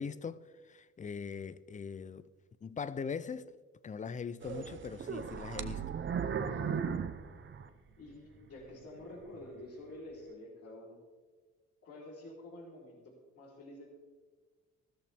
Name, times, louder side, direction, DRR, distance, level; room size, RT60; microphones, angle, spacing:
voice 1, 0.0-2.3 2.6-3.5 3.8-6.0, left 6 dB, 25° left, 0.5 m, -41 dB
sound 1, 4.4-8.2 8.6-8.7 9.3-9.5, right 7 dB, 40° right, 0.9 m, -37 dB
voice 2, 8.0-11.0 11.8-13.9, left 1 dB, 55° left, 3.8 m, -49 dB
14.5 x 13.5 x 3.5 m
cardioid pair, 115°, 30 cm